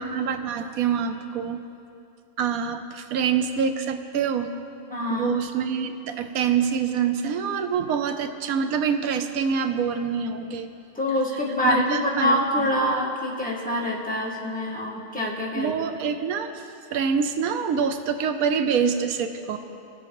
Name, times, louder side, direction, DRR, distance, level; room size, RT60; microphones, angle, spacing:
voice 1, 0.0-1.6 2.4-4.5 5.1-10.7 11.6-12.7 15.5-16.7 16.9-19.6, right 7 dB, 90° right, 8 dB, 1.1 m, -26 dB
voice 2, 4.9-5.3 10.9-15.7, left 1 dB, 5° left, -4 dB, 1.3 m, -25 dB
18.5 x 7.7 x 3.0 m, 2.6 s
omnidirectional pair, 1.5 m